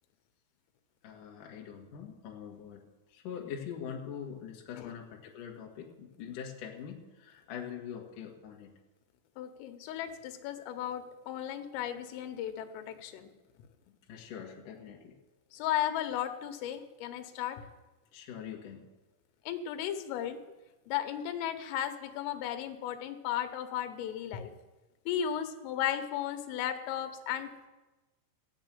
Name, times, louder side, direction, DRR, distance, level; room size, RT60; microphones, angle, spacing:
voice 1, 1.0-2.8 3.1-8.7 14.1-15.2 18.1-18.9, left 8 dB, 55° left, -1 dB, 2.5 m, -43 dB
voice 2, 9.4-13.3 15.5-17.6 19.5-20.4 20.9-24.5 25.1-27.7, left 10 dB, 85° left, 8 dB, 3.7 m, -35 dB
15.5 x 7.7 x 9.0 m, 1.1 s
omnidirectional pair, 5.7 m